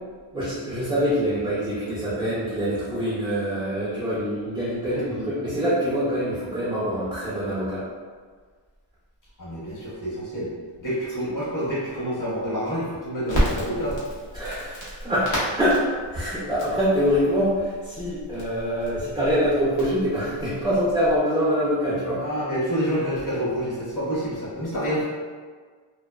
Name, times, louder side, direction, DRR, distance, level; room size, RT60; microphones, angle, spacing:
voice 1, 0.3-7.8 14.3-15.3 15.6-22.2, equal, 10° right, -10 dB, 0.5 m, -25 dB
voice 2, 4.8-5.3 9.4-10.5 10.8-14.0 22.2-25.0, equal, 40° left, -8 dB, 1.0 m, -28 dB
Crackle, 13.3-21.2, equal, 65° left, 0.9 m, -32 dB
2.5 x 2.2 x 2.2 m, 1.6 s
wide cardioid pair, 120°, 49 cm